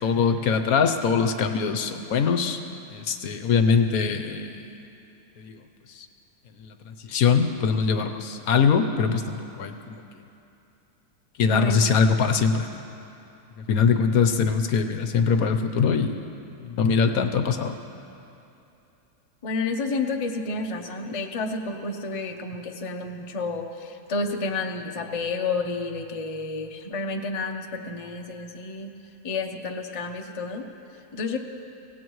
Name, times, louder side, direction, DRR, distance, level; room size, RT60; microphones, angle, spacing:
voice 1, 0.0-2.6 2.9-4.6 5.4-5.6 6.7-6.8 7.1-10.0 11.4-12.7 13.7-16.2 16.6-17.7, left 6 dB, 70° left, 7 dB, 1.2 m, -22 dB
voice 2, 11.5-11.9 19.4-28.9 29.2-30.7 31.1-31.4, left 3 dB, 30° left, 3 dB, 0.7 m, -30 dB
25.0 x 17.5 x 3.1 m, 2.8 s
omnidirectional pair, 1.7 m